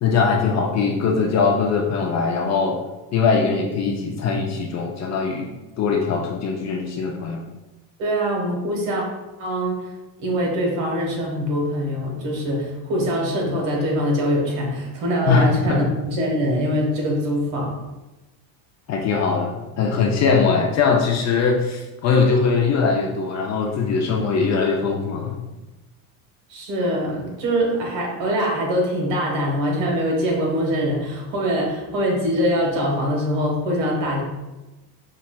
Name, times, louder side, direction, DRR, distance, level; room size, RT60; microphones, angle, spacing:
voice 1, 0.0-2.8 3.1-5.5 5.8-7.4 15.3-15.8 18.9-25.4, left 5 dB, 35° left, 1 dB, 0.4 m, -21 dB
voice 2, 8.0-9.0 9.4-9.8 10.2-17.7 26.5-34.2, equal, 70° right, -1 dB, 1.4 m, -23 dB
5.5 x 2.3 x 2.2 m, 1.1 s
cardioid pair, 120°, 48 cm